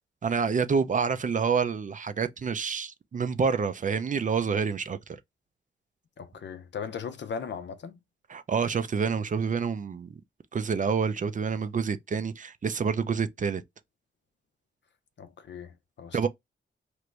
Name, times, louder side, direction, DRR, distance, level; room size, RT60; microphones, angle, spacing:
voice 1, 0.2-5.0 8.3-10.1 10.5-13.6 16.1-16.3, right 5 dB, 40° right, 0.4 m, -27 dB
voice 2, 6.2-8.0 15.2-16.3, left 6 dB, 65° left, 0.5 m, -38 dB
3.0 x 2.5 x 3.2 m
wide cardioid pair, 120°, 20 cm